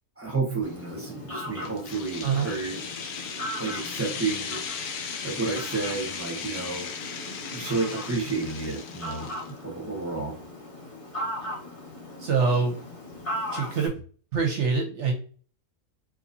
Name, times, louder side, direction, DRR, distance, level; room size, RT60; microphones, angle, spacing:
voice 1, 0.2-2.8 3.6-4.6 5.2-6.9 7.5-10.3, right 4 dB, 10° right, -1 dB, 0.8 m, -31 dB
Fowl, 0.6-13.9, left 1 dB, 25° left, 1.1 m, -38 dB
sound 1, 1.6-9.5, left 6 dB, 70° left, 0.9 m, -37 dB
voice 2, 2.2-2.5 12.2-12.8 13.5-13.9 14.3-15.1, right 5 dB, 60° right, 3 dB, 0.8 m, -24 dB
4.0 x 2.9 x 2.6 m, 0.42 s
omnidirectional pair, 1.6 m